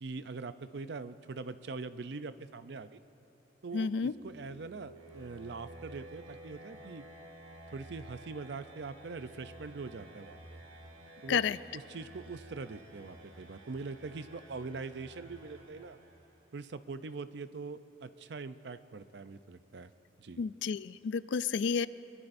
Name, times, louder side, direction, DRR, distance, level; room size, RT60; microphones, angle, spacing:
voice 1, 0.0-3.0 3.6-7.0 7.7-10.6 11.2-16.0 16.5-19.9 20.2-20.4, right 4 dB, 65° right, 12 dB, 0.5 m, -43 dB
voice 2, 3.7-4.1 11.3-11.6 20.4-21.9, left 6 dB, 75° left, 16 dB, 0.3 m, -31 dB
sound 1, 3.7-16.6, right 1 dB, 90° right, 1.9 m, -52 dB
24.0 x 21.0 x 2.6 m, 2.8 s
head